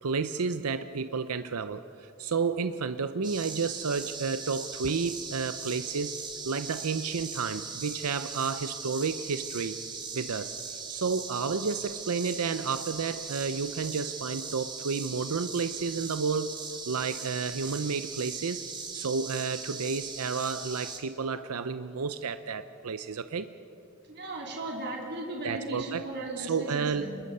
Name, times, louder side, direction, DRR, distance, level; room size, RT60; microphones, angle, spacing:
voice 1, 0.0-6.1 6.4-9.7 10.1-10.5 10.9-16.5 16.9-18.6 18.9-23.5 25.4-26.1 26.4-27.1, right 5 dB, 90° right, 11 dB, 0.7 m, -31 dB
sound 1, 3.2-21.0, right 5 dB, 20° right, 1.7 m, -39 dB
voice 2, 24.1-27.2, right 2 dB, 50° right, -1 dB, 3.4 m, -36 dB
26.0 x 21.0 x 5.6 m, 2.7 s
head